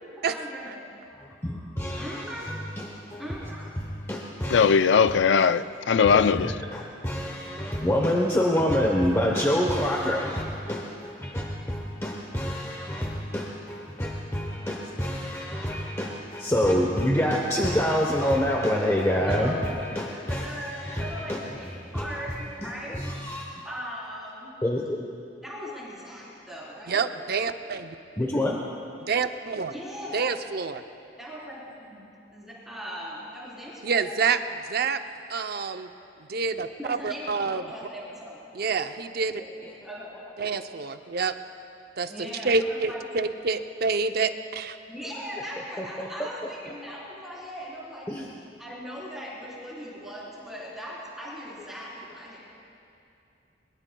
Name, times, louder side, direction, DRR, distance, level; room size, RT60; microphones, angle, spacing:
voice 1, 0.3-0.9 1.9-2.5 3.2-3.7 19.3-19.7 20.3-23.0 23.6-24.5 25.4-27.1 28.2-28.5 29.7-30.3 31.2-34.1 36.8-38.5 39.3-39.5 39.8-40.1 42.1-43.0 44.9-48.1 48.6-52.4, equal, ahead, 3.8 m, -39 dB
voice 2, 1.2-3.3 3.8-4.8 6.0-20.5 20.8-21.4 21.9-22.1 22.6-23.4 24.6-25.0 28.2-28.5 39.6-39.7 45.8-46.7 48.1-48.3, equal, 15° left, 0.9 m, -27 dB
voice 3, 4.5-6.5, left 6 dB, 75° left, 0.4 m, -20 dB
voice 4, 26.9-28.0 29.1-29.7 30.1-30.8 33.8-34.4 34.7-35.0 35.3-35.9 36.3-37.6 38.5-39.4 40.4-41.4 42.0-42.1 42.4-44.8, right 5 dB, 60° right, 0.6 m, -27 dB
22.0 x 21.5 x 2.3 m
head